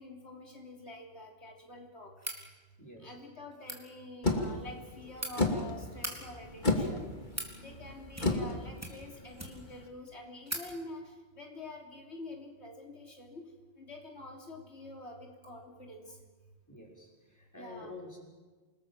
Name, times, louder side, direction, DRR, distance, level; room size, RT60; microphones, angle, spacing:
voice 1, 0.0-2.1 3.0-7.2 7.6-13.5 13.8-16.2 17.6-17.9, left 2 dB, 85° left, 1 dB, 3.5 m, -47 dB
sound 1, 2.2-2.4 3.5-3.8 4.8-5.3 5.9-6.2 6.9-7.5 8.1-8.5 8.8-9.7 10.1-10.2 10.5-10.7, equal, 15° right, 3.9 m, -40 dB
voice 2, 2.8-3.2 7.6-7.8 16.7-18.3, left 2 dB, 15° left, -2 dB, 6.0 m, -49 dB
sound 2, 4.2-9.8, left 2 dB, 45° left, 2.7 m, -33 dB
28.0 x 20.0 x 7.6 m, 1.3 s
omnidirectional pair, 1.1 m